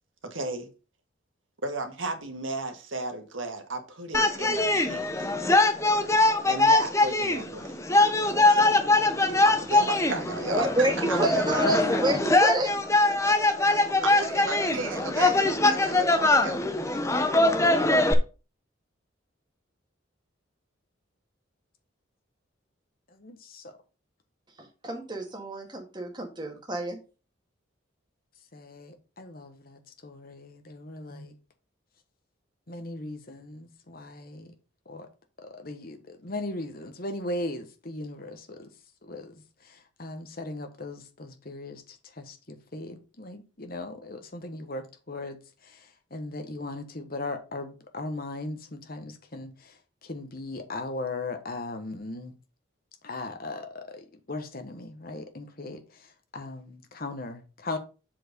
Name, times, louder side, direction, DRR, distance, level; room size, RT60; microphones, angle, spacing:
voice 1, 0.2-0.7 1.6-5.3 6.5-7.8 8.5-8.8 9.4-12.0 13.7-17.2, right 2 dB, 75° right, 1.6 m, -35 dB
sound 1, 4.1-18.1, left 2 dB, 15° left, 0.7 m, -22 dB
voice 2, 10.5-12.7 24.6-27.0, right 1 dB, 20° right, 1.8 m, -28 dB
voice 3, 23.1-23.8 28.5-31.4 32.7-34.5 34.8-35.1 35.4-38.7 39.0-52.3 53.0-57.8, left 2 dB, 45° left, 1.2 m, -38 dB
7.5 x 4.7 x 5.1 m
head